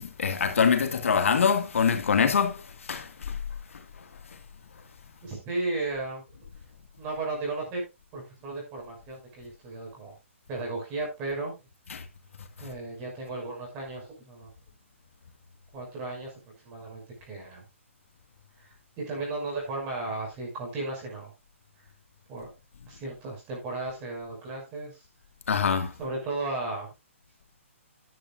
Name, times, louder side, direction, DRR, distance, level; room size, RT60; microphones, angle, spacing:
voice 1, 0.0-2.6 2.9-3.4 11.9-12.0 25.5-25.9, left 6 dB, 75° left, 2.0 m, -24 dB
voice 2, 5.2-6.2 7.0-7.8 8.1-10.1 10.5-11.5 12.6-14.5 15.7-16.3 16.6-17.6 19.0-21.3 22.3-22.5 22.9-24.9 26.0-26.9, right 3 dB, 20° right, 5.9 m, -34 dB
12.0 x 10.5 x 2.5 m
hypercardioid pair, 165°, 7 cm